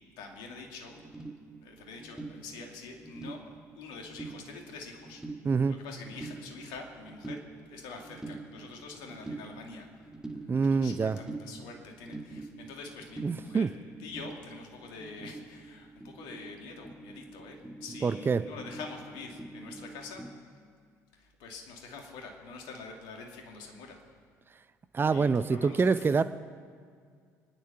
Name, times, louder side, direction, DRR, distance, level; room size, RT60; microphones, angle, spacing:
voice 1, 0.2-1.0 1.6-5.2 5.7-9.9 10.4-13.7 14.0-20.2 21.2-24.0 25.1-26.2, left 4 dB, 65° left, 2 dB, 2.5 m, -46 dB
sound 1, 0.9-20.4, right 2 dB, 5° right, 1.5 m, -46 dB
voice 2, 5.4-5.8 10.5-11.2 13.2-13.7 18.0-18.4 24.9-26.2, right 5 dB, 25° right, 13 dB, 0.6 m, -26 dB
24.5 x 10.5 x 5.8 m, 2.1 s
figure-of-eight pair, 55°, 9 cm